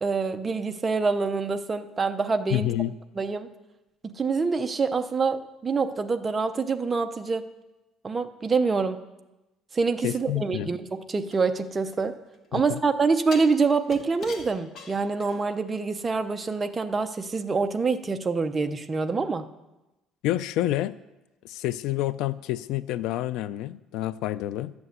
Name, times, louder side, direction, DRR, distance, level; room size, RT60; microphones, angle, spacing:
voice 1, 0.0-2.7 3.2-3.5 4.0-7.4 8.0-9.0 9.7-12.1 12.5-19.5, right 4 dB, 20° right, 8 dB, 0.6 m, -26 dB
voice 2, 2.5-2.9 10.0-10.7 12.5-12.8 20.2-20.9 21.4-24.7, left 14 dB, 70° left, 16 dB, 0.4 m, -28 dB
sound 1, 11.3-12.5 13.3-15.7 16.0-16.1, left 4 dB, 40° left, 1.7 m, -43 dB
12.0 x 7.9 x 8.0 m, 1.0 s
cardioid pair, 165°, 0 cm